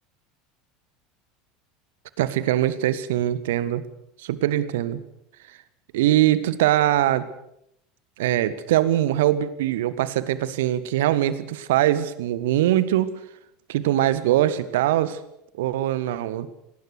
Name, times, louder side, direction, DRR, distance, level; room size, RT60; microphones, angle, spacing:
voice 1, 2.2-3.8 4.2-5.0 5.9-7.2 8.2-13.1 13.7-15.2 15.6-16.5, right 13 dB, 60° right, 15 dB, 1.6 m, -22 dB
27.0 x 19.5 x 6.6 m, 0.77 s
figure-of-eight pair, 70°, 0 cm